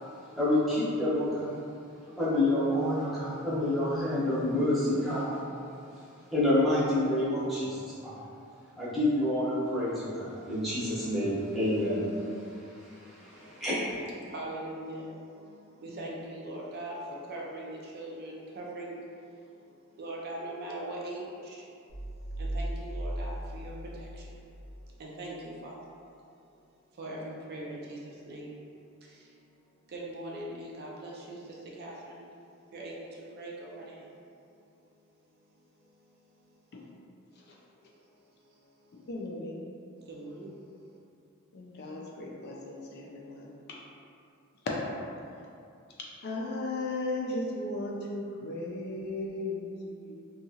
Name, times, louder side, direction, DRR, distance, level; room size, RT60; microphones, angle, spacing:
voice 1, 0.3-1.6 2.1-5.4 6.3-8.2 8.7-14.0, left 1 dB, ahead, -12 dB, 0.8 m, -28 dB
voice 2, 13.3-13.6 14.2-19.1 19.6-19.7 20.0-21.7 22.4-24.4 25.0-25.8 27.0-28.6 29.1-29.3 29.9-32.2 32.7-34.1 40.1-40.5 40.8-40.9, right 1 dB, 45° right, -4 dB, 0.4 m, -41 dB
sound 1, 21.9-24.5, right 1 dB, 80° left, 0.7 m, -36 dB
voice 3, 39.1-39.6 41.5-43.8 44.9-45.0 46.2-50.1, left 2 dB, 50° left, -2 dB, 0.3 m, -36 dB
2.8 x 2.3 x 2.7 m, 2.5 s
head